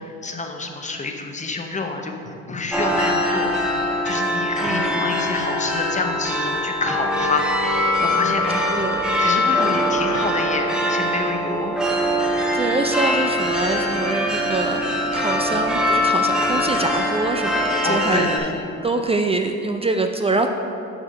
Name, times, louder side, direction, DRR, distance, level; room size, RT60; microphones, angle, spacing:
voice 1, 0.0-3.8 4.0-7.4 7.8-8.7 9.2-11.8 15.5-15.6 17.8-18.5, left 3 dB, 25° left, 4 dB, 0.7 m, -28 dB
sound 1, 2.7-18.4, left 1 dB, 5° right, 0.9 m, -22 dB
voice 2, 4.6-5.0 8.7-9.2 12.2-18.3 18.8-20.5, right 3 dB, 20° right, 5 dB, 0.3 m, -25 dB
6.2 x 4.8 x 5.3 m, 2.7 s
cardioid pair, 90°, 30 cm